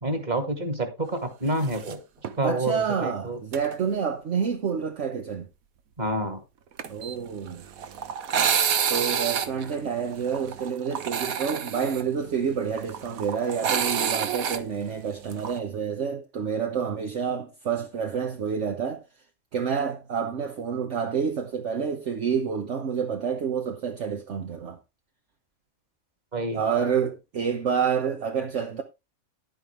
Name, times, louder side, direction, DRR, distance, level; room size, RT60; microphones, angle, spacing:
voice 1, 0.0-2.0 2.4-3.4 6.0-6.4 26.3-26.6, right 2 dB, 30° right, 2.2 m, -28 dB
sound 1, 1.6-1.9 2.2-2.3 3.5-3.7 6.8-15.6, right 8 dB, 80° right, 1.4 m, -28 dB
voice 2, 2.4-5.5 6.9-7.6 8.9-19.0 19.5-24.8 26.5-28.8, right 7 dB, 60° right, 1.3 m, -28 dB
11.0 x 9.6 x 3.3 m
omnidirectional pair, 1.5 m